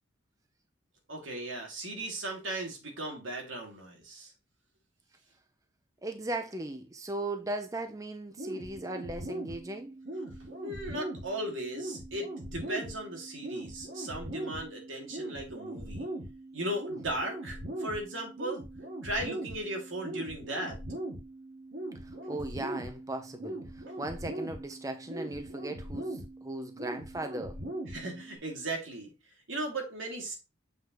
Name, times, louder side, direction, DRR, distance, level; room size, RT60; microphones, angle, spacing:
voice 1, 1.1-4.3 10.6-16.1 16.5-18.6 19.0-20.8 23.9-24.0 27.9-29.1 29.5-30.3, right 1 dB, 80° right, 2.3 m, -37 dB
voice 2, 6.0-9.9 22.3-27.6, right 2 dB, 15° right, 0.6 m, -38 dB
sound 1, 8.4-28.4, right 1 dB, 60° right, 2.0 m, -40 dB
7.8 x 5.1 x 3.0 m
head